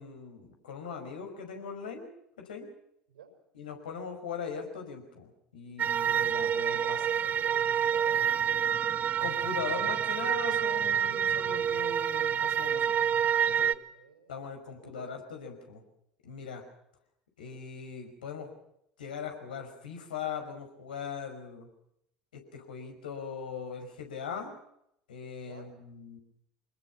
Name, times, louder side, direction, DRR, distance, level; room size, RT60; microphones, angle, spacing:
voice 1, 0.0-2.1 2.4-2.7 3.5-7.0 9.2-13.0 13.4-13.7 14.3-15.8 16.2-16.6 17.4-18.5 19.0-21.7 22.3-24.5 25.1-26.2, left 6 dB, 70° left, 4 dB, 5.4 m, -40 dB
sound 1, 5.8-13.7, right 8 dB, 35° right, 1.1 m, -28 dB
voice 2, 6.7-8.3 13.9-15.2 25.4-25.7, right 7 dB, 75° right, 5 dB, 5.8 m, -50 dB
26.0 x 21.0 x 6.0 m, 0.77 s
figure-of-eight pair, 70°, 5 cm